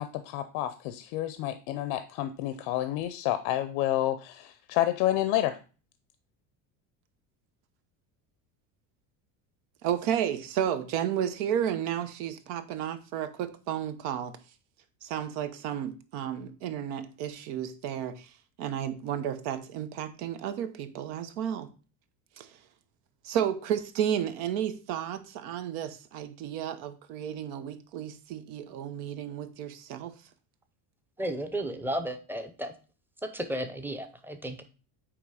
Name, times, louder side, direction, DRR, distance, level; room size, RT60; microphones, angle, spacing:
voice 1, 0.0-5.6, left 13 dB, 85° left, 0.7 m, -29 dB
voice 2, 9.8-14.3 15.0-18.3 18.6-21.7 22.4-22.5 23.2-30.1, right 9 dB, 85° right, 1.0 m, -32 dB
voice 3, 31.2-32.7 33.2-34.6, right 1 dB, 5° right, 0.6 m, -33 dB
8.7 x 3.0 x 4.8 m
cardioid pair, 140°, 44 cm